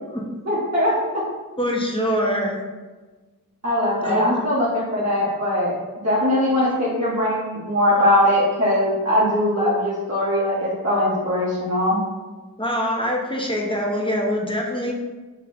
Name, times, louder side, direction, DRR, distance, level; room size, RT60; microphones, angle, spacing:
voice 1, 0.4-1.0 3.6-5.7 6.0-12.0, left 1 dB, 50° right, -8 dB, 1.4 m, -21 dB
voice 2, 1.6-2.6 4.0-4.3 12.6-14.9, equal, 15° left, -2 dB, 0.9 m, -24 dB
4.1 x 3.2 x 4.1 m, 1.3 s
cardioid pair, 45°, 35 cm